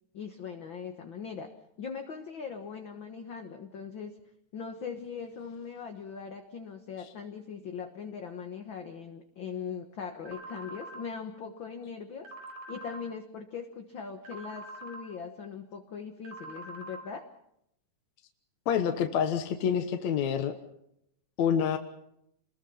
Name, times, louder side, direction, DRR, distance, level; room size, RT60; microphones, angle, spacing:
voice 1, 0.1-1.5 1.8-4.1 4.5-12.3 12.7-17.2, left 6 dB, 50° left, 5 dB, 1.8 m, -40 dB
sound 1, 10.3-11.0 12.3-13.0 14.3-15.0 16.3-17.0, right 1 dB, 85° right, 6.0 m, -44 dB
voice 2, 18.7-20.5 21.4-21.8, left 8 dB, 70° left, 6 dB, 2.5 m, -27 dB
28.5 x 21.5 x 5.7 m, 0.78 s
omnidirectional pair, 3.5 m